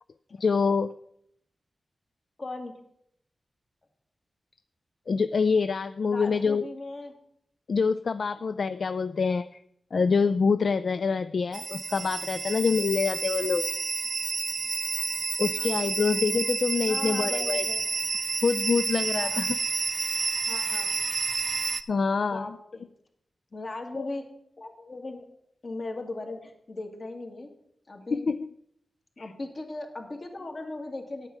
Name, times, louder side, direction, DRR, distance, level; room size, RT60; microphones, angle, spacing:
voice 1, 0.4-0.9 5.1-6.6 7.7-9.6 9.9-13.7 15.4-17.6 18.4-19.6 21.9-22.5 24.0-24.1 28.1-28.5 29.2-29.3, left 5 dB, 70° left, 12 dB, 0.3 m, -26 dB
voice 2, 2.4-2.8 6.1-7.1 8.3-8.4 15.6-16.0 16.9-17.8 19.2-19.4 20.5-20.9 22.2-22.9 23.5-24.2 24.6-25.3 25.6-27.5 27.9-28.2 29.2-31.3, left 2 dB, 50° left, 3 dB, 2.1 m, -38 dB
sound 1, 11.5-21.8, right 4 dB, 60° right, 0.6 m, -30 dB
9.1 x 8.9 x 6.0 m, 0.72 s
wide cardioid pair, 75°, 0 cm